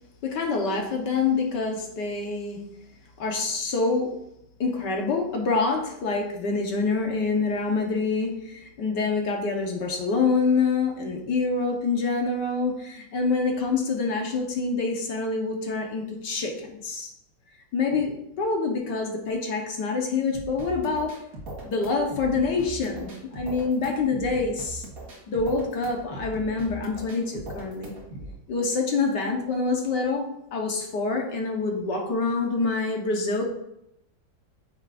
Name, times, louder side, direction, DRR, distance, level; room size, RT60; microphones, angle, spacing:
voice 1, 0.2-2.6 3.2-4.1 4.6-17.1 17.7-21.2 21.6-24.8 25.3-28.0 28.5-30.3 30.5-33.4, left 4 dB, 60° left, 2 dB, 1.8 m, -26 dB
sound 1, 20.3-28.3, right 1 dB, 45° right, 1.9 m, -40 dB
9.4 x 7.0 x 2.6 m, 0.81 s
omnidirectional pair, 2.2 m